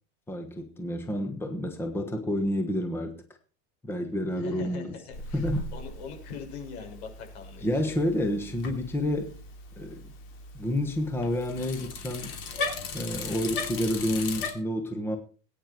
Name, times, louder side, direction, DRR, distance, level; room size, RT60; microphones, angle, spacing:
voice 1, 0.3-3.2 3.8-4.9 5.3-5.7 7.6-9.3 9.8-10.1 10.5-12.4 12.9-15.2, left 1 dB, 5° left, 1.3 m, -29 dB
voice 2, 4.4-7.7, left 6 dB, 90° left, 6.5 m, -42 dB
Bicycle, 5.1-14.5, left 3 dB, 40° left, 3.1 m, -37 dB
20.0 x 9.5 x 4.6 m
cardioid pair, 175°, 32 cm